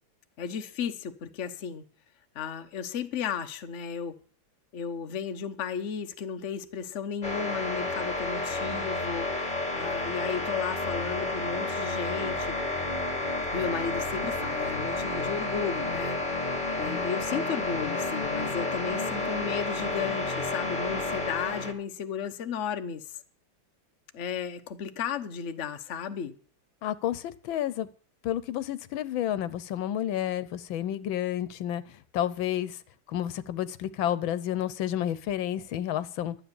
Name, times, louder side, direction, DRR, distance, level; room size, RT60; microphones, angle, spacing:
voice 1, 0.4-1.8 2.3-4.2 4.7-12.6 13.5-16.2 16.8-23.2 24.1-26.4, left 7 dB, 50° left, 1.0 m, -34 dB
sound 1, 7.2-21.7, left 2 dB, 25° left, 2.2 m, -31 dB
voice 2, 26.8-27.9 28.2-31.8 32.1-32.8 33.1-36.3, left 11 dB, 80° left, 1.5 m, -30 dB
12.0 x 8.6 x 7.0 m
omnidirectional pair, 2.1 m